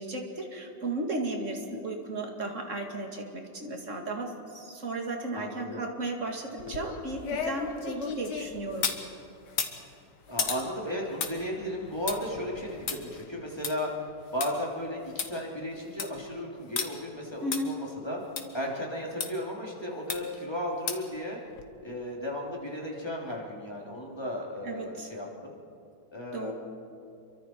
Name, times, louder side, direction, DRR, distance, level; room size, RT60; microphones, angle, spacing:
voice 1, 0.0-8.9 17.4-17.7 24.6-25.1 26.3-26.5, right 2 dB, 40° right, 2 dB, 2.7 m, -34 dB
voice 2, 5.3-5.9 10.3-13.9 14.3-18.2 18.5-21.4 21.8-25.6 26.1-26.5, equal, 15° left, -2 dB, 3.1 m, -35 dB
sound 1, 6.6-9.0 9.5-14.5 14.9-15.0 15.2-15.3 15.7-16.2 16.8-16.9 17.5-17.6 18.4-18.5 19.2-19.3 20.1-20.4 20.9-21.2 21.6-21.7, left 6 dB, 65° left, 2.0 m, -34 dB
28.0 x 24.0 x 4.6 m, 2.6 s
omnidirectional pair, 2.0 m